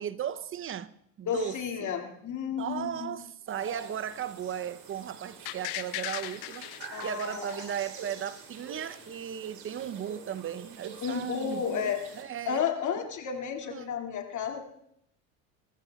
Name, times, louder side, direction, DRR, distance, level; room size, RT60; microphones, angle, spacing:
voice 1, 0.0-1.9 2.5-6.7 7.0-12.6 13.0-13.1 13.7-13.9, right 9 dB, 30° right, 0.7 m, -36 dB
voice 2, 1.3-3.1 6.9-7.5 11.0-12.0 12.5-14.6, left 7 dB, 45° left, 2.3 m, -32 dB
sound 1, 3.5-12.2, right 5 dB, 60° right, 3.2 m, -46 dB
sound 2, 5.5-8.4 8.7-8.8, left 16 dB, 65° left, 0.9 m, -38 dB
21.5 x 15.0 x 2.3 m
hypercardioid pair, 75°, 42 cm